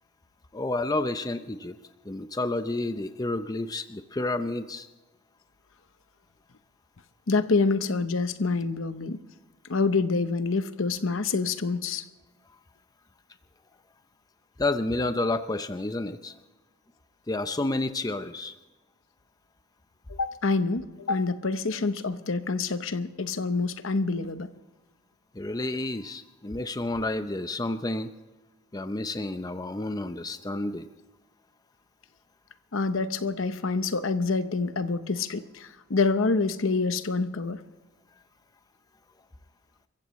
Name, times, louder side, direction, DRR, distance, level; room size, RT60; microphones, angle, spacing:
voice 1, 0.5-1.8 2.0-4.9 14.6-16.3 17.3-18.5 25.3-28.1 28.7-30.9, left 2 dB, 20° left, 9 dB, 0.6 m, -30 dB
voice 2, 7.3-9.2 9.7-12.0 20.1-24.5 32.7-37.6, left 4 dB, 70° left, 11 dB, 0.9 m, -27 dB
29.0 x 15.0 x 3.1 m, 1.2 s
head